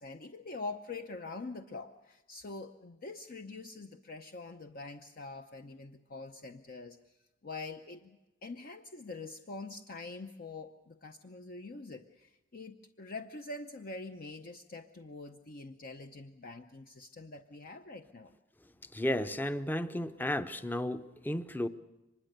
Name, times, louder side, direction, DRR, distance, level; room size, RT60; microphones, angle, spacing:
voice 1, 0.0-7.0 7.4-18.3, left 3 dB, 50° left, 6 dB, 0.7 m, -45 dB
voice 2, 18.8-21.7, left 1 dB, 10° left, 12 dB, 0.7 m, -33 dB
24.5 x 21.0 x 6.7 m, 1.0 s
head